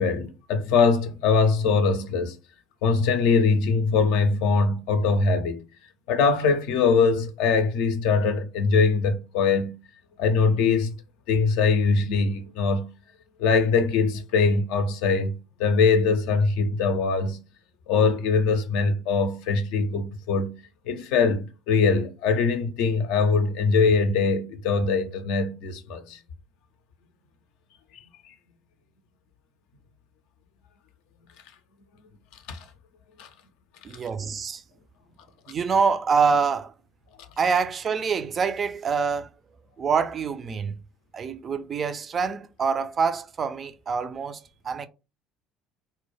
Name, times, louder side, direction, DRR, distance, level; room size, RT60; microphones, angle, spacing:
voice 1, 0.0-2.4 2.8-5.6 6.1-9.7 10.2-10.9 11.3-12.9 13.4-17.4 17.9-20.5 20.9-26.2 28.3-28.4 32.5-32.6 33.2-33.3, left 4 dB, 70° left, 0.4 m, -22 dB
voice 2, 33.8-34.6 35.5-36.7 37.4-39.3 39.8-40.8 41.1-44.9, right 5 dB, 40° right, 0.3 m, -25 dB
2.1 x 2.1 x 3.0 m
hypercardioid pair, 60°, 0 cm